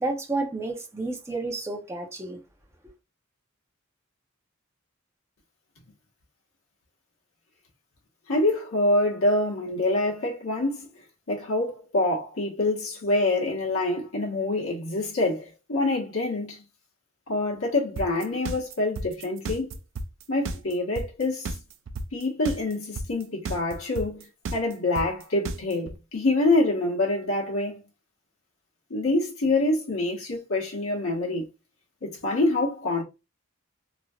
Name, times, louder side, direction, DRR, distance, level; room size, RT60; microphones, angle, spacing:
voice 1, 0.0-2.4, right 2 dB, 15° right, 0.7 m, -30 dB
voice 2, 8.3-10.9 11.3-16.6 17.3-19.7 20.3-21.5 22.1-27.8 28.9-31.5 32.0-33.0, left 2 dB, 80° left, 1.3 m, -26 dB
sound 1, 18.0-25.9, right 2 dB, 65° right, 0.4 m, -32 dB
3.1 x 2.7 x 2.3 m
head